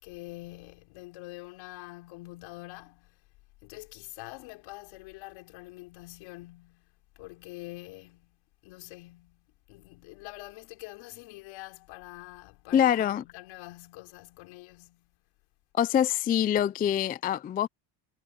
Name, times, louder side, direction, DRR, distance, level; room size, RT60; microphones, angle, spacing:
voice 1, 0.0-3.2 3.6-15.1, left 21 dB, 75° left, 4.7 m, -46 dB
voice 2, 12.7-13.2 15.8-17.7, left 10 dB, 20° left, 0.3 m, -25 dB
cardioid pair, 120°, 46 cm